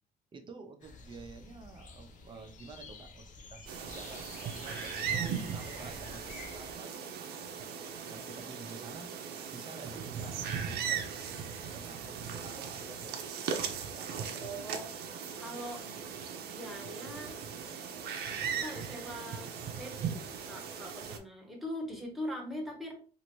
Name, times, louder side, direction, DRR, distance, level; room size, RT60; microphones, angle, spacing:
voice 1, 0.3-3.3 3.5-7.1 7.6-9.1 9.5-11.5 11.7-14.4, right 4 dB, 30° right, 5 dB, 0.6 m, -50 dB
sound 1, 0.8-6.7, left 4 dB, 50° left, 0.6 m, -49 dB
sound 2, 3.7-21.2, right 7 dB, 70° right, 0.6 m, -38 dB
voice 2, 14.3-14.8 15.4-15.8 16.5-17.4 18.5-19.5 19.7-22.9, equal, ahead, -1 dB, 1.1 m, -41 dB
2.8 x 2.6 x 3.0 m, 0.39 s
cardioid pair, 110°, 17 cm